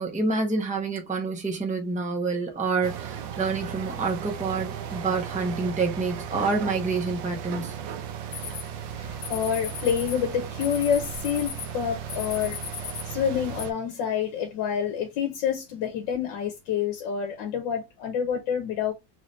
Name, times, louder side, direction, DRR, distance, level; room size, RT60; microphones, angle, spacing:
voice 1, 0.0-7.7, right 4 dB, 10° right, 0.4 m, -28 dB
sound 1, 2.8-13.7, right 9 dB, 85° right, 1.4 m, -36 dB
sound 2, 8.3-13.7, left 8 dB, 70° left, 0.7 m, -39 dB
voice 2, 8.9-18.9, left 8 dB, 90° left, 1.5 m, -28 dB
3.9 x 2.7 x 3.0 m
omnidirectional pair, 2.0 m